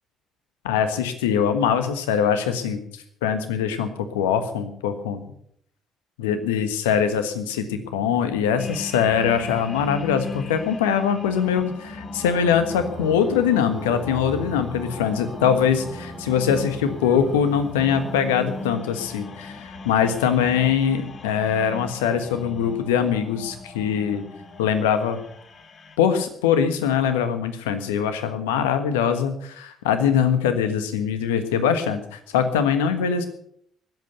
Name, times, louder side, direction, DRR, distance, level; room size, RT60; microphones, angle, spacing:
voice 1, 0.6-2.8 3.2-5.2 6.2-24.2 24.6-25.2 26.0-33.3, left 7 dB, 80° left, 10 dB, 1.4 m, -22 dB
sound 1, 8.6-26.0, left 3 dB, 45° left, 1.9 m, -38 dB
sound 2, 12.6-18.7, right 1 dB, 65° right, 4.5 m, -41 dB
20.0 x 8.2 x 6.8 m, 0.67 s
hypercardioid pair, 50°, 0 cm